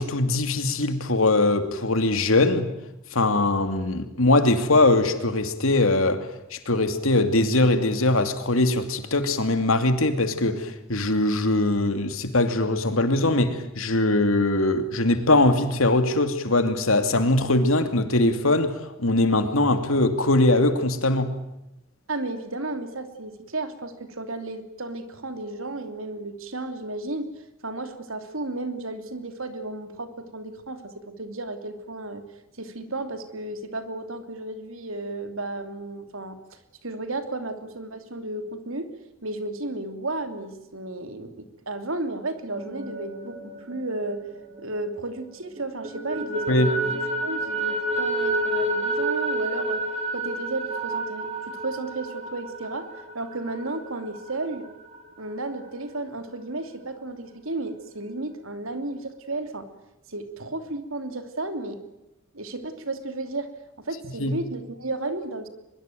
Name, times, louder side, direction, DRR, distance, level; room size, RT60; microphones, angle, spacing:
voice 1, 0.0-2.6 3.1-21.3 46.5-46.7 64.2-64.3, left 2 dB, 75° left, 9 dB, 2.7 m, -21 dB
voice 2, 22.1-27.3 27.6-32.2 32.5-38.9 39.2-44.3 44.6-46.6 46.8-49.8 50.1-52.9 53.1-54.7 55.2-59.7 60.1-61.8 62.3-63.5 63.8-65.5, right 2 dB, 70° right, 8 dB, 3.0 m, -33 dB
sound 1, 42.4-45.2 45.6-55.0, right 2 dB, 30° right, 3.9 m, -30 dB
23.0 x 22.5 x 9.3 m, 0.93 s
head